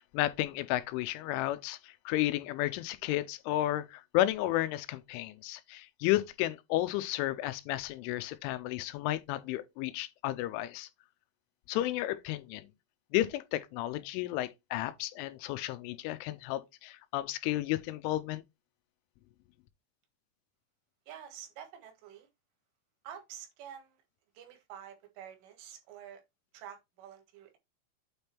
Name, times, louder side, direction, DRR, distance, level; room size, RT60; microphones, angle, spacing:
voice 1, 0.1-10.9 11.7-12.7 13.1-18.4, left 15 dB, 90° left, 3.1 m, -32 dB
voice 2, 21.1-22.3 23.0-24.0 24.4-26.2 26.5-27.6, right 9 dB, 80° right, 3.9 m, -48 dB
8.8 x 3.4 x 4.4 m
omnidirectional pair, 5.6 m